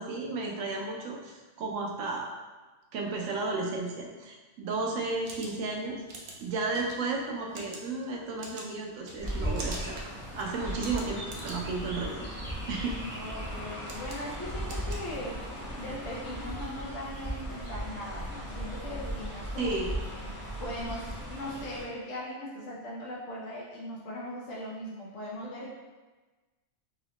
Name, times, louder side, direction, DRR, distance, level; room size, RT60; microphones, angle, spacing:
voice 1, 0.0-2.4 2.9-6.0 6.4-12.3 12.7-13.0 19.6-19.9, right 3 dB, 85° right, 0 dB, 1.0 m, -33 dB
sound 1, 5.0-15.7, right 2 dB, 60° right, 0.7 m, -47 dB
Chirp tweet, 9.2-21.8, equal, 15° right, 0.4 m, -37 dB
voice 2, 13.1-15.4 15.8-19.7 20.1-20.2 20.6-25.7, left 1 dB, 70° left, -4 dB, 0.9 m, -39 dB
3.8 x 2.1 x 2.9 m, 1.2 s
omnidirectional pair, 1.3 m